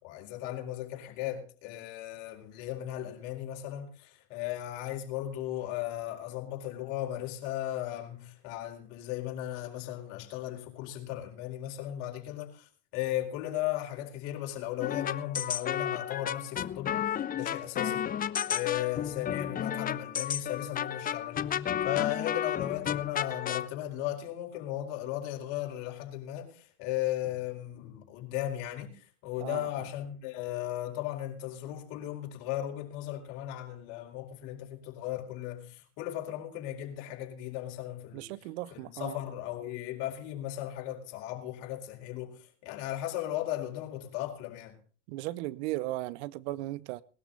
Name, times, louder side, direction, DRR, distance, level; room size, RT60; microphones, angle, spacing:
voice 1, 0.0-16.9 17.3-18.0 18.5-21.4 21.8-38.3 38.7-44.8, left 13 dB, 60° left, 4.4 m, -36 dB
sound 1, 14.8-23.7, left 9 dB, 25° left, 0.7 m, -32 dB
voice 2, 38.1-39.2 45.1-47.0, right 17 dB, 65° right, 0.9 m, -36 dB
20.0 x 12.5 x 3.9 m
hypercardioid pair, 95°, 36 cm